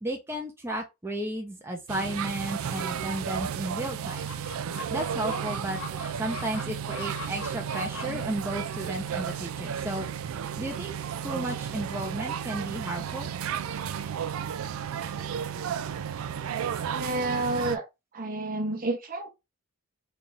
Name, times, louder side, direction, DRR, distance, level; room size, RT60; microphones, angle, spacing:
voice 1, 0.0-4.3 4.9-5.8 6.2-10.1 10.6-11.0 11.2-13.3, right 1 dB, 10° right, 0.7 m, -33 dB
sound 1, 1.9-17.8, right 8 dB, 70° right, 0.4 m, -33 dB
Chicken rooster, 4.3-15.4, left 3 dB, 75° left, 0.8 m, -45 dB
voice 2, 16.9-17.8 18.1-19.3, right 2 dB, 40° right, 0.9 m, -29 dB
3.3 x 2.5 x 3.9 m
head